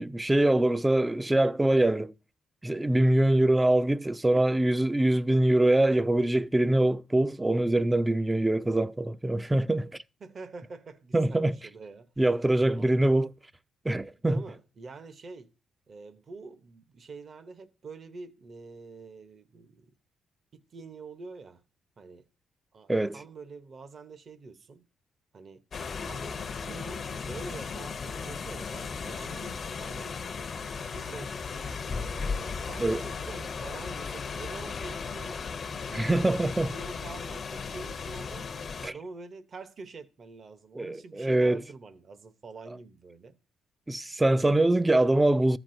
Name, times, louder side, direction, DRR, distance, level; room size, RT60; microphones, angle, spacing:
voice 1, 0.0-2.1 2.6-9.9 11.1-11.5 12.2-13.3 13.8-14.4 22.9-23.2 32.8-33.0 35.9-36.7 38.8-38.9 40.8-41.6 43.9-45.6, right 1 dB, 15° right, 0.4 m, -24 dB
voice 2, 10.2-12.1 12.7-13.1 14.3-15.5 15.9-19.9 20.5-21.6 22.0-22.3 22.7-24.8 25.3-25.7 26.0-30.1 30.7-31.4 32.0-35.4 35.8-38.5 38.8-43.4, right 4 dB, 45° right, 0.8 m, -46 dB
sound 1, 25.7-38.9, left 5 dB, 45° left, 0.6 m, -36 dB
14.0 x 6.0 x 2.6 m
cardioid pair, 90°, 0 cm